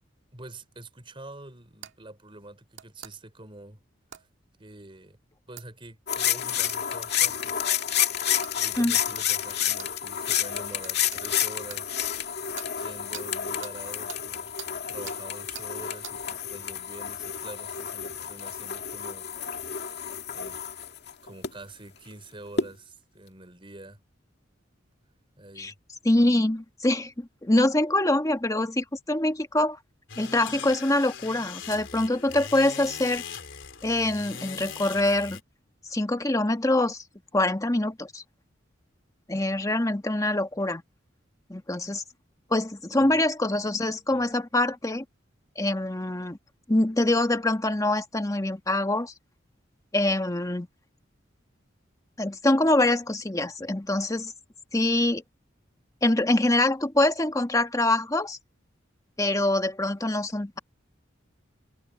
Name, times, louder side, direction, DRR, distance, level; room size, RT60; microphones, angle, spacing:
voice 1, 0.3-3.8 4.1-4.3 4.6-5.2 5.5-7.6 8.6-12.0 12.3-12.5 12.8-14.5 14.9-19.6 20.3-20.6 21.2-24.0 25.4-25.8 42.9-43.2 44.1-44.2, right 2 dB, 30° right, 3.9 m, -46 dB
sound 1, 1.8-1.9 2.7-3.1 4.1-4.2 5.6-5.7 6.7-6.8 7.5-7.6 8.4-8.6 8.9-9.0 9.8-9.9 10.3-10.5 10.8-11.8 12.6-12.7 13.1-13.3 13.6-13.8 14.1-14.2 14.6-14.7 15.1-15.2 15.5-15.7 16.0-16.2, right 10 dB, 80° right, 1.7 m, -42 dB
sound 2, 6.1-21.5 22.6-22.7, left 9 dB, 60° left, 2.2 m, -30 dB
voice 2, 26.0-29.8 30.2-33.2 33.8-35.4 35.9-37.0 37.3-38.2 39.3-40.8 41.5-42.0 42.5-45.0 45.6-46.4 46.7-49.1 49.9-50.7 52.2-54.3 54.7-55.2 56.0-58.4 59.2-60.6, left 1 dB, 20° left, 1.3 m, -24 dB
sound 3, 30.1-35.4, left 7 dB, 80° left, 3.8 m, -40 dB
head